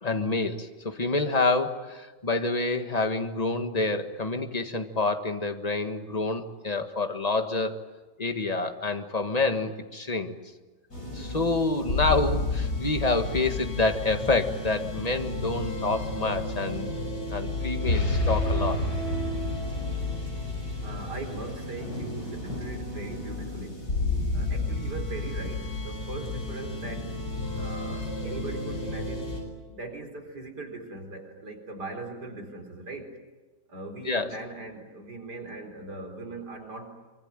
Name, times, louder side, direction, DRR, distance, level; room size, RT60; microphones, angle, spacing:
voice 1, 0.0-7.8 8.2-10.3 11.1-17.0 17.3-18.8 34.1-34.3, left 3 dB, 25° left, 6 dB, 1.7 m, -27 dB
sound 1, 10.9-29.4, left 2 dB, 65° left, 7.3 m, -31 dB
voice 2, 20.8-23.9 24.3-27.1 27.5-29.3 29.7-33.1 33.7-37.0, right 2 dB, 70° right, 4 dB, 4.6 m, -40 dB
25.0 x 25.0 x 9.1 m, 1.2 s
omnidirectional pair, 1.8 m